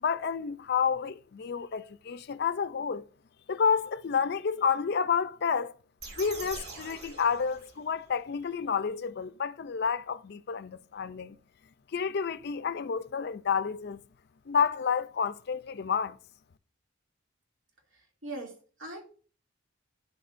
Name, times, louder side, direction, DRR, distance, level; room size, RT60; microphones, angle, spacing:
voice 1, 0.0-3.0 3.5-5.7 6.2-11.4 11.9-14.0 14.5-16.2, left 6 dB, 55° left, 0.4 m, -30 dB
sound 1, 6.0-8.1, right 3 dB, 55° right, 2.3 m, -44 dB
voice 2, 18.2-19.0, right 2 dB, 75° right, 2.7 m, -40 dB
11.0 x 7.9 x 2.6 m
head